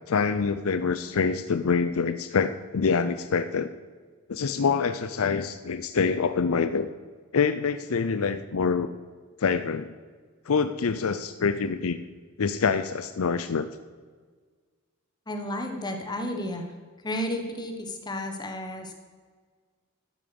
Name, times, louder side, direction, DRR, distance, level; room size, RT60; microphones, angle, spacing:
voice 1, 0.1-3.7 4.3-6.9 7.3-8.9 9.4-9.9 10.5-12.0 12.4-13.7, left 5 dB, 85° left, 11 dB, 0.5 m, -25 dB
voice 2, 15.3-16.7 17.0-18.9, left 1 dB, 20° left, 4 dB, 1.3 m, -32 dB
12.5 x 8.6 x 7.0 m, 1.5 s
head